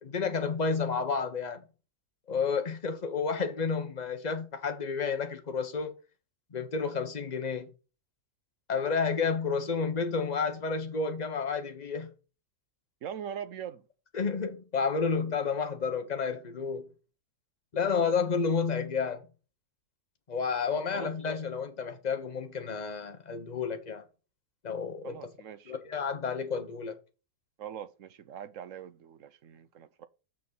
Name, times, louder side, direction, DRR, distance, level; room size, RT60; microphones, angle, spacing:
voice 1, 0.0-1.6 2.3-5.9 6.5-7.7 8.7-12.1 14.1-16.9 17.7-19.2 20.3-24.0 24.6-25.2 25.7-26.9, left 5 dB, 30° left, 1.0 m, -31 dB
voice 2, 13.0-13.8 20.7-21.1 25.0-25.8 27.6-30.1, right 9 dB, 60° right, 0.9 m, -42 dB
6.5 x 6.1 x 6.9 m
omnidirectional pair, 1.9 m